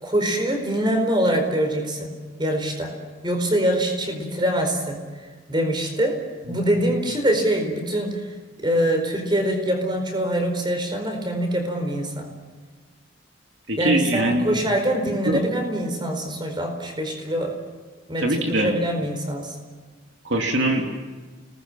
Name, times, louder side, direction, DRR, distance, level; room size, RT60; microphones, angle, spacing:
voice 1, 0.0-3.0 3.2-5.0 5.5-6.2 6.5-8.3 8.6-12.3 13.8-17.6 18.1-19.6, right 1 dB, 20° right, 5 dB, 4.7 m, -24 dB
voice 2, 13.7-14.5 15.3-15.5 18.2-18.8 20.2-20.9, right 1 dB, 65° right, 2 dB, 2.6 m, -22 dB
30.0 x 20.0 x 7.4 m, 1.4 s
head